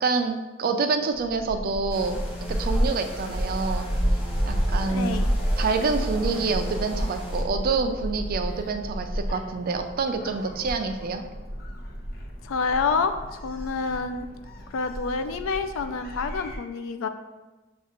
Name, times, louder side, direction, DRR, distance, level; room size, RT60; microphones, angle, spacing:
voice 1, 0.0-2.2 2.5-3.8 4.5-5.2 5.6-11.2, right 4 dB, 50° right, 6 dB, 0.4 m, -27 dB
Gull seagull, 1.1-16.6, equal, 50° left, 0.7 m, -30 dB
sound 1, 1.9-7.4, equal, 30° left, 0.9 m, -39 dB
voice 2, 4.9-5.3 12.4-14.3 14.7-17.1, left 4 dB, 85° left, 8 dB, 0.4 m, -28 dB
7.1 x 2.4 x 2.9 m, 1.2 s
head